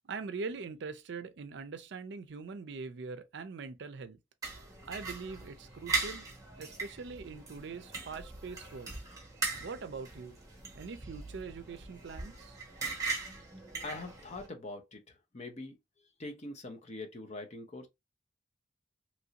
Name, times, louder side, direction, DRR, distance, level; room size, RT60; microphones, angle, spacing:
voice 1, 0.0-4.2 4.9-6.3 6.6-8.9 9.6-10.4 10.7-12.6, right 4 dB, 65° right, 0.4 m, -42 dB
sound 1, 4.4-14.5, right 4 dB, 20° right, 1.0 m, -39 dB
voice 2, 13.8-15.8 16.2-17.9, left 2 dB, 35° left, 0.8 m, -43 dB
3.0 x 2.6 x 2.8 m
head